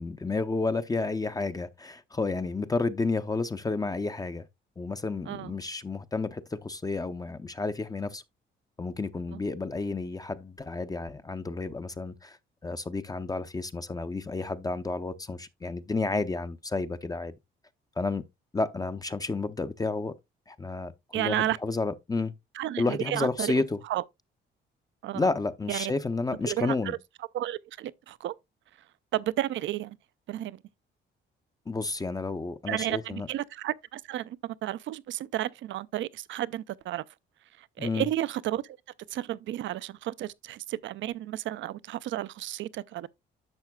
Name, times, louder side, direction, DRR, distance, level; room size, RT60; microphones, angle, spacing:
voice 1, 0.0-4.5 4.8-8.2 8.8-17.3 18.0-18.2 18.5-20.1 20.5-22.3 22.8-23.8 25.1-27.0 31.7-33.3 37.8-38.1, left 3 dB, 20° left, 0.6 m, -31 dB
voice 2, 21.1-21.6 22.6-23.5 23.9-24.0 25.0-25.3 25.7-25.9 26.5-27.0 27.3-28.3 29.1-30.0 30.3-30.6 32.7-37.0 37.8-38.6 39.1-43.1, right 13 dB, 70° right, 0.5 m, -32 dB
10.5 x 6.5 x 2.2 m
cardioid pair, 90°, 20 cm